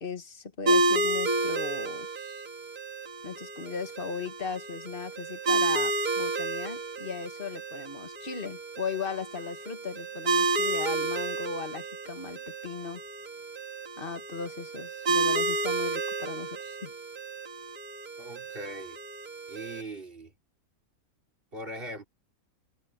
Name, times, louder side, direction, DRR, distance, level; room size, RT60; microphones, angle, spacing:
voice 1, 0.0-2.4 3.2-13.0 14.0-16.9, left 5 dB, 40° left, 1.8 m, -37 dB
sound 1, 0.7-19.8, right 2 dB, 75° right, 2.7 m, -31 dB
voice 2, 18.2-19.0 19.5-20.3 21.5-22.0, right 1 dB, 35° right, 3.8 m, -40 dB
omnidirectional pair, 1.6 m